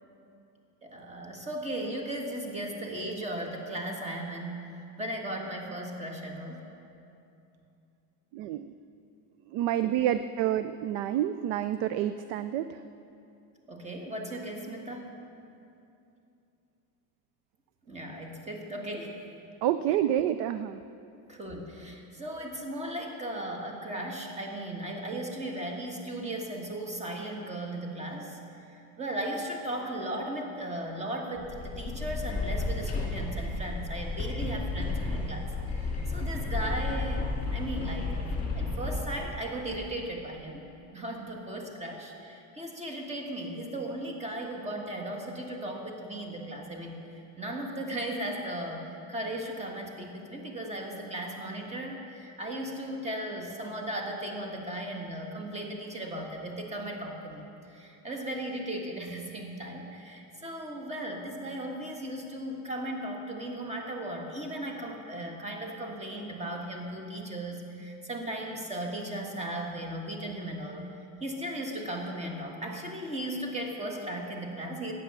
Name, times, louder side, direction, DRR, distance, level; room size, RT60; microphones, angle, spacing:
voice 1, 0.8-6.6 13.7-15.2 17.9-19.2 21.3-28.4 28.7-38.3 38.5-40.7 40.9-70.9 71.2-74.9, right 1 dB, 15° right, 2 dB, 1.4 m, -36 dB
voice 2, 8.3-8.7 9.5-12.8 19.6-20.8, right 11 dB, 80° right, 12 dB, 0.5 m, -28 dB
sound 1, 31.4-39.9, left 3 dB, 20° left, 2.5 m, -33 dB
13.0 x 9.2 x 6.8 m, 2.7 s
cardioid pair, 160°, 42 cm